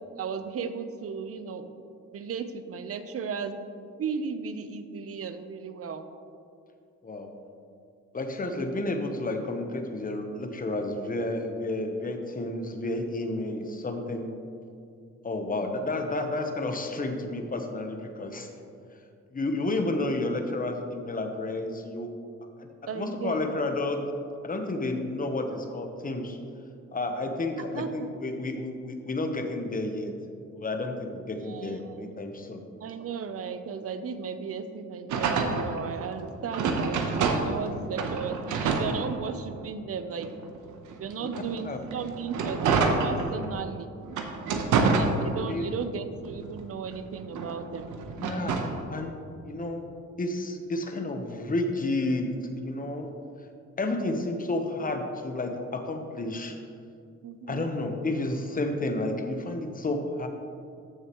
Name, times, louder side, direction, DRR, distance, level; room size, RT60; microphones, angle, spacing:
voice 1, 0.2-1.7 2.1-6.1 15.4-15.7 22.9-23.5 27.7-28.3 31.4-32.1 32.8-40.3 40.9-43.9 44.9-47.9 57.2-57.7, right 6 dB, 50° right, 10 dB, 0.7 m, -35 dB
voice 2, 8.1-14.4 15.2-18.5 19.3-22.1 22.9-24.1 24.4-26.4 26.9-30.1 30.5-32.6 37.7-37.8 41.6-41.8 45.5-45.6 48.2-48.6 48.9-49.2 49.4-49.8 50.2-52.3 52.6-53.1 53.8-56.5 57.5-60.3, left 2 dB, 30° left, 5 dB, 1.0 m, -31 dB
sound 1, 35.1-37.7 38.0-39.6 40.2-43.6 44.1-45.7 46.1-48.8, right 4 dB, 75° right, 1.0 m, -28 dB
14.0 x 6.6 x 3.1 m, 2.5 s
cardioid pair, 90°, 30 cm